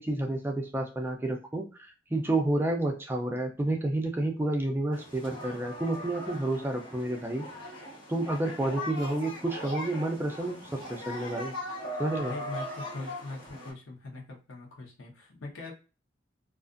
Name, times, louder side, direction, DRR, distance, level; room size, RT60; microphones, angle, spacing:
voice 1, 0.0-1.6 2.1-7.5 8.1-11.5 12.0-12.3, right 2 dB, 10° right, 3 dB, 0.3 m, -30 dB
sound 1, 4.9-13.7, left 1 dB, 70° left, 1.4 m, -40 dB
voice 2, 12.2-15.7, left 2 dB, 90° left, -1 dB, 0.9 m, -41 dB
2.4 x 2.4 x 2.4 m, 0.33 s
head